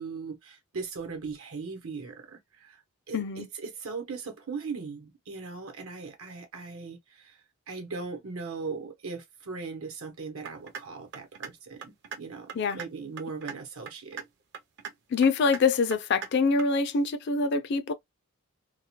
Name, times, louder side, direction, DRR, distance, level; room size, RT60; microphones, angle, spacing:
voice 1, 0.0-2.8 3.1-14.2, right 4 dB, 80° right, 0.9 m, -39 dB
voice 2, 3.1-3.5 12.6-12.8 15.1-17.9, left 4 dB, 50° left, 0.4 m, -25 dB
sound 1, 10.4-10.8 11.1-11.5 11.8-12.2 12.5-12.9 13.2-13.6 13.9-14.3 14.5-14.9 15.2-15.6 15.9-16.3 16.6-16.7, right 7 dB, 55° right, 0.5 m, -38 dB
2.3 x 2.1 x 2.9 m
head